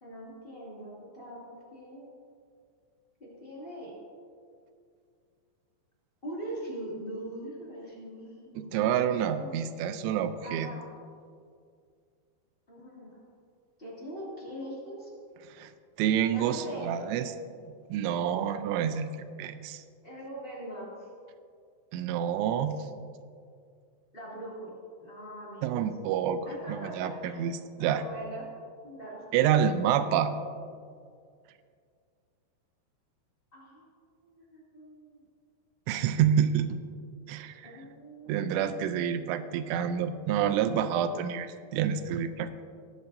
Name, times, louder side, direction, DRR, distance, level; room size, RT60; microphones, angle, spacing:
voice 1, 0.0-2.0 3.2-3.9 6.2-9.1 9.3-9.5 10.4-10.8 12.7-13.2 13.8-15.1 16.3-16.9 20.0-21.1 24.1-25.8 26.4-27.5 27.8-28.5 28.8-29.5 33.5-33.8 34.2-35.2 37.6-38.7, right 1 dB, 25° left, -6 dB, 1.2 m, -42 dB
voice 2, 8.6-10.7 15.5-15.7 16.0-17.3 17.9-19.1 19.4-19.8 21.9-22.9 25.6-26.4 26.7-27.5 27.8-28.0 29.3-30.3 35.9-36.8 37.3-37.7 38.3-42.6, right 9 dB, 85° right, 10 dB, 3.0 m, -28 dB
18.0 x 9.4 x 2.7 m, 2.2 s
omnidirectional pair, 5.4 m